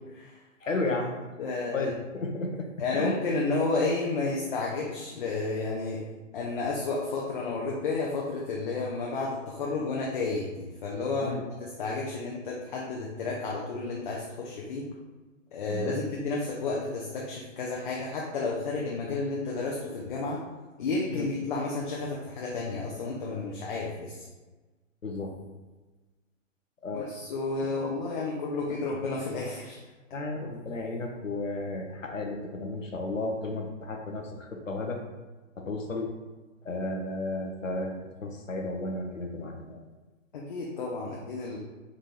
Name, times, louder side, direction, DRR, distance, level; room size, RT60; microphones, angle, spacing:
voice 1, 0.6-1.1 1.5-3.2 11.2-11.4 15.7-16.0 21.1-21.3 25.0-25.4 26.8-27.1 28.7-28.8 30.1-35.0 35.6-36.1 36.6-39.8, left 2 dB, 75° left, 2 dB, 0.9 m, -33 dB
voice 2, 1.4-1.9 2.8-6.0 6.3-11.3 11.6-14.8 15.5-20.4 20.8-24.2 26.9-29.8 40.3-41.6, left 3 dB, 40° left, -3 dB, 0.7 m, -31 dB
3.7 x 3.7 x 2.9 m, 1.2 s
figure-of-eight pair, 120°, 39 cm